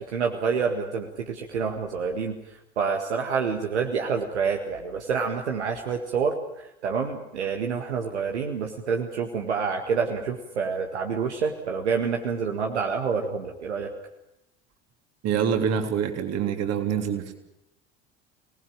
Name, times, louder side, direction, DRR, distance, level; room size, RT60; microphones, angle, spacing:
voice 1, 0.1-2.4 2.8-6.3 6.8-13.9, right 5 dB, 75° right, 3 dB, 2.0 m, -27 dB
voice 2, 15.2-17.3, right 7 dB, 45° right, 6 dB, 3.4 m, -25 dB
26.0 x 19.0 x 8.8 m, 0.86 s
figure-of-eight pair, 65°, 34 cm